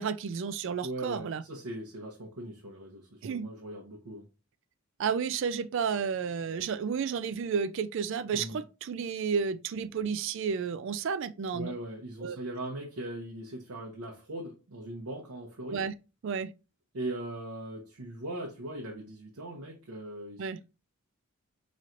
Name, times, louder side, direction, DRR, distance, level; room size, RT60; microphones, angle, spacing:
voice 1, 0.0-1.4 3.2-3.5 5.0-11.7 12.2-12.4 15.7-15.9 16.2-16.5 20.4-20.6, right 6 dB, 55° right, 0.3 m, -32 dB
voice 2, 0.8-4.3 8.3-8.6 11.5-15.8 16.9-20.6, right 1 dB, 85° right, 0.8 m, -40 dB
4.3 x 3.1 x 2.5 m
head